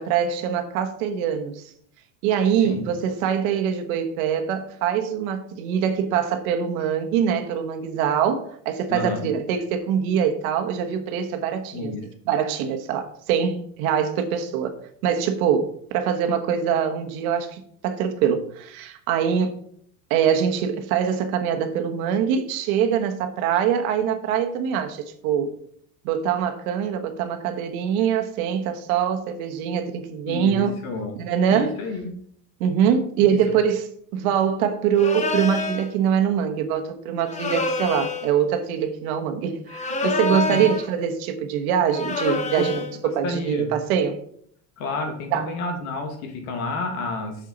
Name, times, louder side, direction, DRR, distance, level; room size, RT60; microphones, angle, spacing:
voice 1, 0.0-1.6 2.2-11.9 12.3-14.8 15.0-19.6 20.1-25.5 26.0-30.8 31.2-31.7 32.6-44.2 45.3-45.5, right 8 dB, 85° right, 1.3 m, -23 dB
voice 2, 8.9-9.3 11.7-12.1 30.3-31.2 31.5-32.1 33.2-33.4 40.3-40.7 42.4-42.7 43.2-43.7 44.8-47.4, left 3 dB, 90° left, 2.1 m, -30 dB
sound 1, 35.0-35.9 37.3-38.3 39.7-40.9 41.9-42.9, left 4 dB, 15° left, 0.8 m, -27 dB
6.7 x 6.7 x 4.0 m
supercardioid pair, 130°, 42 cm